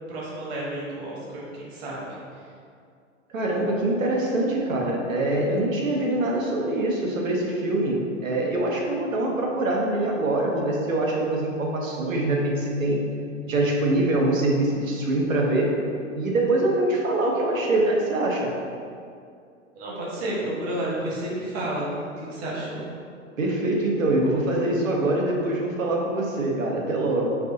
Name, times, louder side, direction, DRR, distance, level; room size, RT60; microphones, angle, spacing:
voice 1, 0.1-2.1 19.7-21.9 22.2-22.8, right 1 dB, 50° right, -5 dB, 1.4 m, -31 dB
voice 2, 3.3-13.0 13.4-15.7 16.1-18.5 23.4-27.4, right 2 dB, 80° right, -1 dB, 1.0 m, -24 dB
4.6 x 2.7 x 3.9 m, 2.3 s
hypercardioid pair, 105°, 39 cm